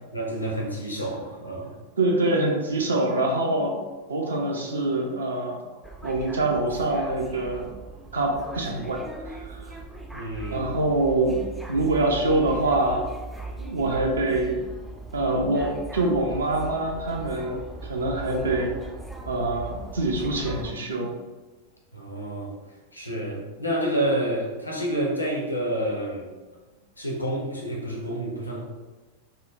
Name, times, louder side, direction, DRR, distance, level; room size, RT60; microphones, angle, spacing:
voice 1, 0.1-1.7 10.1-10.8 21.9-22.5 22.9-26.3 27.0-28.6, right 1 dB, 85° left, -2 dB, 0.6 m, -29 dB
voice 2, 1.7-3.8 4.1-5.6 6.0-7.7 8.1-9.7 10.5-11.4 11.7-13.1 13.6-14.6 15.1-18.7 19.3-21.1, right 2 dB, 70° right, 0 dB, 0.5 m, -25 dB
sound 1, 5.8-20.7, right 2 dB, ahead, 0.3 m, -39 dB
3.7 x 2.1 x 2.4 m, 1.3 s
figure-of-eight pair, 90°, 0 cm